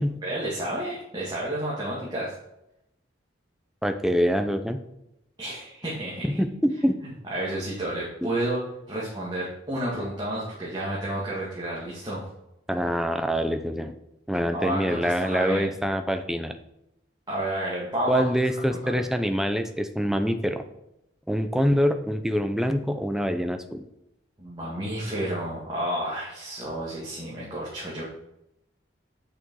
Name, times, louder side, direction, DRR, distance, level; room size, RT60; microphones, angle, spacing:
voice 1, 0.2-2.3 5.4-6.2 7.3-8.6 8.9-12.2 14.5-15.7 17.3-18.2 18.7-19.0 24.4-28.1, right 1 dB, 20° right, -7 dB, 2.1 m, -31 dB
voice 2, 3.8-4.8 6.2-7.0 8.2-8.3 12.7-13.9 14.3-16.6 18.1-20.6 21.3-23.8, equal, ahead, 7 dB, 0.6 m, -25 dB
8.4 x 6.5 x 4.7 m, 0.85 s
head